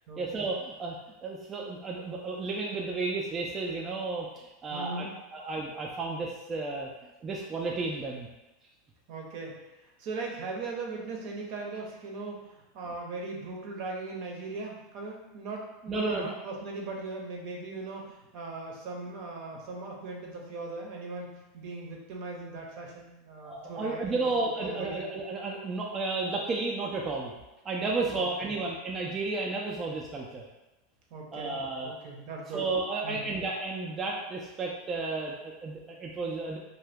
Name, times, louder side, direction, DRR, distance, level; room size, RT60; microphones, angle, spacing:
voice 1, 0.2-5.1 5.3-6.9 7.2-8.3 15.9-16.3 23.4-27.3 27.6-30.4 31.3-31.9 32.5-36.6, right 3 dB, 25° right, -2 dB, 0.4 m, -32 dB
voice 2, 4.7-5.3 9.1-25.0 28.1-28.5 31.1-32.7 33.0-33.3, right 3 dB, 60° right, 0 dB, 0.7 m, -39 dB
2.7 x 2.1 x 3.4 m, 1.0 s
supercardioid pair, 120°, 0 cm